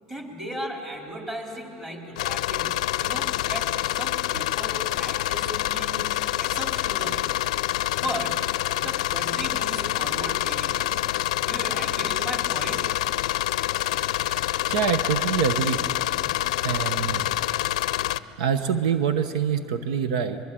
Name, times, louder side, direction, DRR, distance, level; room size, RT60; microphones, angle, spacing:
voice 1, 0.0-6.0 6.4-7.3 7.9-10.9 11.4-12.9, equal, 15° right, 1 dB, 4.2 m, -36 dB
sound 1, 2.2-18.2, left 15 dB, 90° left, 0.5 m, -26 dB
voice 2, 14.7-15.9 16.6-17.3 18.4-20.4, right 7 dB, 85° right, 10 dB, 0.9 m, -25 dB
23.0 x 22.5 x 8.9 m, 2.9 s
supercardioid pair, 115°, 4 cm